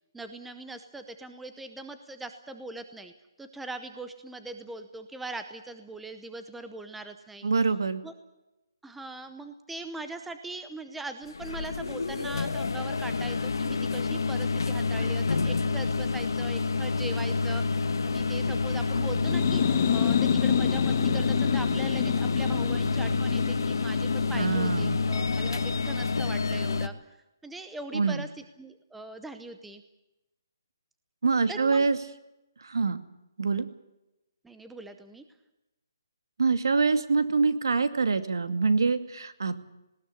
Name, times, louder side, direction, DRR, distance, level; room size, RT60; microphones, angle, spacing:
voice 1, 0.1-3.1 3.4-7.5 8.0-8.1 8.8-19.6 19.9-26.9 27.4-28.3 28.6-29.8 31.5-31.9 34.4-35.2, right 2 dB, ahead, 9 dB, 0.7 m, -41 dB
voice 2, 7.4-8.0 24.3-25.0 27.9-28.2 31.2-32.0 32.6-33.0 33.4-33.7 36.4-39.6, right 4 dB, 75° right, 11 dB, 2.4 m, -25 dB
sound 1, 11.2-26.9, left 4 dB, 70° left, 1.5 m, -28 dB
sound 2, 19.1-26.6, left 8 dB, 25° left, 1.3 m, -29 dB
19.0 x 18.0 x 9.8 m, 0.93 s
hypercardioid pair, 175°, 2 cm